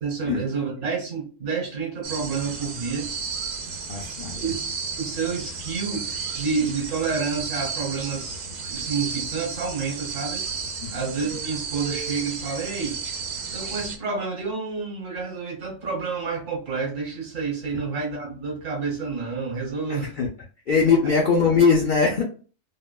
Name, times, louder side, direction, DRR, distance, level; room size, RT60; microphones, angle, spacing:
voice 1, 0.0-3.1 4.4-10.5 10.9-13.0 13.5-20.1, right 5 dB, 60° right, 0 dB, 1.3 m, -29 dB
sound 1, 2.0-14.0, right 5 dB, 85° right, 1.1 m, -33 dB
voice 2, 3.9-4.5 10.8-11.1 19.9-20.3 20.7-22.2, left 5 dB, 75° left, -3 dB, 0.4 m, -21 dB
2.9 x 2.1 x 2.2 m, 0.37 s
omnidirectional pair, 1.5 m